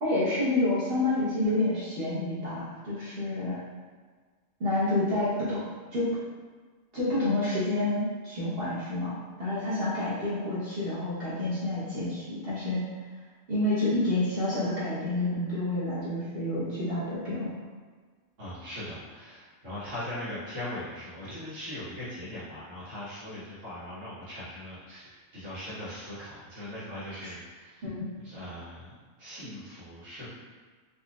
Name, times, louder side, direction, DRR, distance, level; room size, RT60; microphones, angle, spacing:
voice 1, 0.0-3.6 4.6-5.6 5.9-6.2 6.9-12.9 13.5-17.5 27.2-27.3 27.8-28.1, left 2 dB, 50° right, -11 dB, 1.2 m, -29 dB
voice 2, 18.4-27.8 28.2-30.3, left 1 dB, 75° right, -12 dB, 1.5 m, -40 dB
4.3 x 2.6 x 2.3 m, 1.5 s
omnidirectional pair, 1.3 m